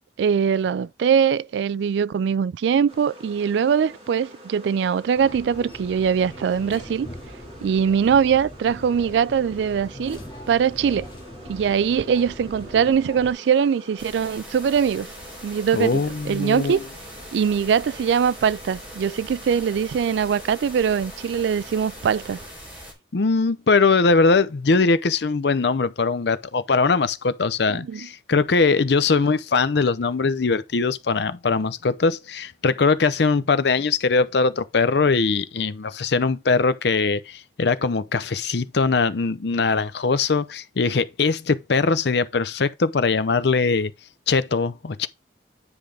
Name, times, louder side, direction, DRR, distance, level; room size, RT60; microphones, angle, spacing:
voice 1, 0.2-7.1 7.6-10.2 10.5-11.1 11.5-15.1 15.4-16.8 17.3-22.4 27.7-28.1, right 7 dB, 75° right, 0.3 m, -22 dB
sound 1, 2.9-22.5, equal, 30° right, 2.8 m, -46 dB
sound 2, 5.1-13.3, equal, 25° left, 2.0 m, -41 dB
sound 3, 14.0-22.9, equal, 10° right, 3.5 m, -41 dB
voice 2, 15.7-16.8 23.1-43.9 44.3-45.1, left 4 dB, 70° left, 0.6 m, -21 dB
9.7 x 5.1 x 3.4 m
head